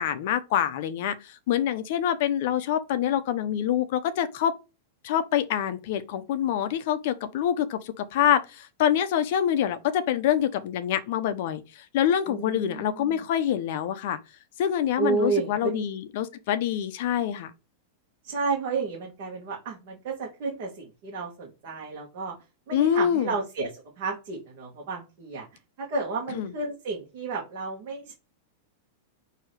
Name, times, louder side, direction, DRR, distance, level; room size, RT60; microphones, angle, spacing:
voice 1, 0.0-4.5 5.0-11.6 11.9-14.2 14.6-17.5 22.7-23.3 26.4-26.5, left 10 dB, 50° left, 0.5 m, -26 dB
voice 2, 12.3-13.2 15.0-15.8 18.2-22.3 22.7-25.5 25.8-28.1, right 4 dB, 40° right, 1.4 m, -31 dB
6.1 x 2.7 x 3.1 m
supercardioid pair, 175°, 0 cm